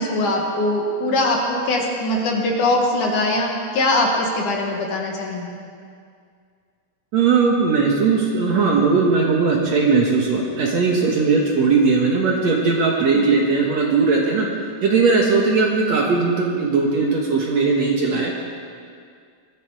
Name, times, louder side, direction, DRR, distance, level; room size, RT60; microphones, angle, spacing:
voice 1, 0.0-5.5 13.0-13.3, left 1 dB, 60° left, 0 dB, 2.9 m, -22 dB
voice 2, 7.1-14.5 14.8-18.3, right 4 dB, 55° right, -1 dB, 2.3 m, -18 dB
21.0 x 14.0 x 4.8 m, 2.2 s
omnidirectional pair, 4.3 m